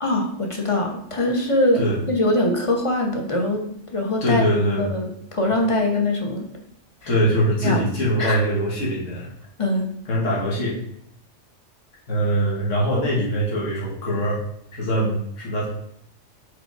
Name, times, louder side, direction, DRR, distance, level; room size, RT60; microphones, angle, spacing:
voice 1, 0.0-4.4 4.8-6.5 7.0-7.1 7.6-7.9 8.2-8.4 9.6-9.9, left 1 dB, 30° left, 1 dB, 1.0 m, -23 dB
voice 2, 4.2-4.9 7.1-9.3 10.1-10.8 12.1-14.4 14.7-15.7, equal, 85° left, -5 dB, 1.9 m, -22 dB
5.0 x 4.4 x 4.6 m, 0.71 s
omnidirectional pair, 1.3 m